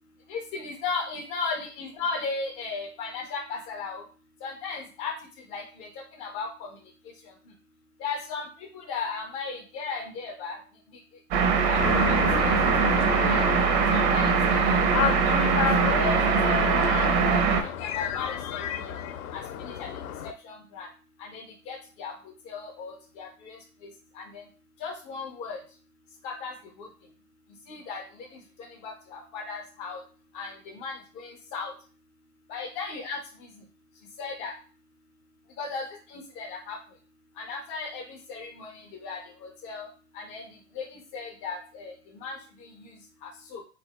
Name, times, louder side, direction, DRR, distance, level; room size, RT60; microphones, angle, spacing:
voice 1, 0.3-4.0 4.4-5.1 5.5-5.9 6.2-6.7 8.0-10.6 11.7-12.2 12.5-12.6 13.0-13.5 13.9-14.9 15.1-15.7 16.0-16.2 16.4-16.5 17.3-17.4 17.8-18.9 19.3-19.9 20.2-20.9 21.2-22.1 22.5-23.6 24.2-24.4 24.8-25.6 26.2-26.9 27.7-28.3 28.6-30.0 30.3-31.7 32.5-33.2 34.2-34.5 35.6-36.8 37.4-39.9 40.1-40.4 40.8-41.9 42.2-42.4 43.2-43.6, left 4 dB, 15° left, 2 dB, 0.3 m, -36 dB
sound 1, 11.3-17.6, right 6 dB, 40° right, 0.7 m, -22 dB
sound 2, 11.7-20.3, left 10 dB, 65° left, 0.6 m, -31 dB
3.7 x 2.8 x 3.4 m, 0.38 s
hypercardioid pair, 120°, 48 cm